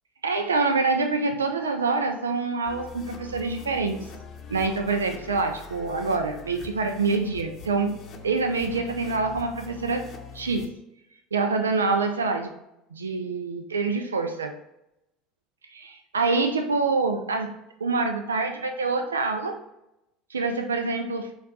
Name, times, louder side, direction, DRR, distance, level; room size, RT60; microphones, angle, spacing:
voice 1, 0.2-4.1 4.5-8.0 8.2-10.1 10.3-10.7 11.3-12.5 12.9-14.6 15.7-15.8 16.1-19.6 20.3-21.3, right 4 dB, 90° right, 6 dB, 0.3 m, -26 dB
sound 1, 2.7-10.7, left 5 dB, 50° left, 0.6 m, -43 dB
4.3 x 2.3 x 4.0 m, 0.84 s
hypercardioid pair, 75°, 0 cm